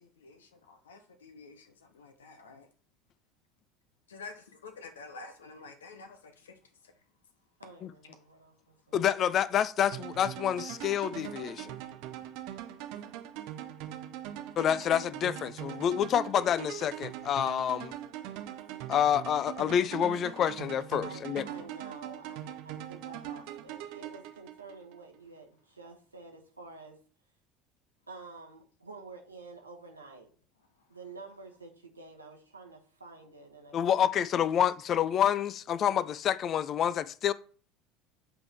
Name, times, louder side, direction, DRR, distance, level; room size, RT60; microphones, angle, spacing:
voice 1, 0.0-2.7 4.1-6.9 12.9-13.1 33.7-33.8, left 4 dB, 70° left, 0.7 m, -49 dB
voice 2, 7.6-9.0 21.0-27.0 28.1-30.3 30.9-34.2, right 3 dB, 85° right, 1.0 m, -49 dB
voice 3, 8.9-11.7 14.6-18.0 18.9-21.4 33.7-37.3, left 9 dB, 40° left, 0.3 m, -28 dB
sound 1, 9.9-25.0, right 11 dB, 55° right, 0.6 m, -42 dB
7.8 x 3.6 x 3.4 m
figure-of-eight pair, 65°, 0 cm